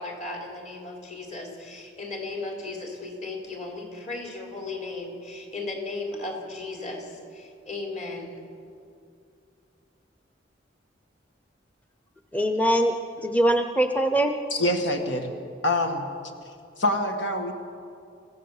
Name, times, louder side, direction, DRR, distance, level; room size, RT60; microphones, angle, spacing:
voice 1, 0.0-8.4, left 2 dB, 40° left, 1 dB, 3.9 m, -36 dB
voice 2, 12.3-14.3, right 1 dB, 10° left, 6 dB, 0.8 m, -22 dB
voice 3, 14.5-15.3 15.6-16.1 16.8-17.5, left 1 dB, 80° left, 4 dB, 1.9 m, -25 dB
26.0 x 16.0 x 7.3 m, 2.5 s
head